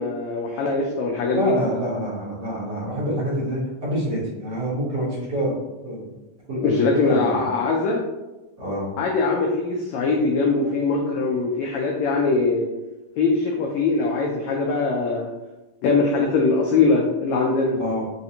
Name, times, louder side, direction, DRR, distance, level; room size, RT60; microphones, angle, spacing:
voice 1, 0.0-1.5 6.6-8.0 9.0-12.7 13.2-15.3 15.8-17.7, left 3 dB, 85° left, -1 dB, 1.6 m, -22 dB
voice 2, 1.3-5.6 5.8-6.0 6.5-6.6 6.9-7.5 8.6-8.9 17.7-18.1, equal, 70° right, -8 dB, 1.0 m, -26 dB
4.9 x 2.5 x 2.7 m, 1.0 s
omnidirectional pair, 3.7 m